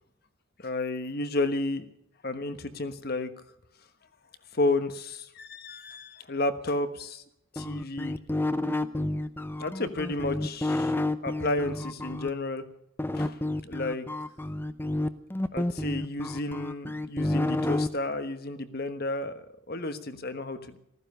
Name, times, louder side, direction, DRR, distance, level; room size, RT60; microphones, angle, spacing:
voice 1, 0.6-1.8 2.2-3.3 4.5-7.2 7.5-8.2 9.6-10.9 11.2-12.6 13.1-14.0 15.5-20.8, left 2 dB, 50° left, 10 dB, 1.3 m, -32 dB
sound 1, 7.6-12.3 13.0-17.9, left 1 dB, 10° left, 0.6 m, -30 dB
15.0 x 14.0 x 6.7 m, 0.72 s
head